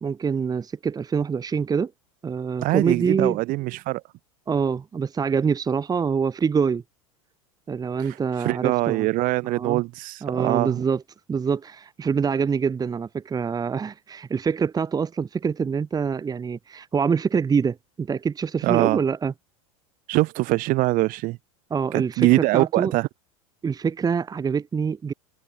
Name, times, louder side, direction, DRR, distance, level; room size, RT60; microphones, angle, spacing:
voice 1, 0.0-1.9 2.2-3.4 4.5-6.8 7.7-9.1 9.4-9.8 10.2-11.0 11.3-19.3 21.7-22.9 23.6-25.1, right 6 dB, 20° right, 1.7 m, -25 dB
voice 2, 2.6-4.0 8.0-10.8 18.6-19.0 20.1-21.4 21.9-23.1, right 20 dB, 50° right, 1.0 m, -23 dB
hypercardioid pair, 100°, 18 cm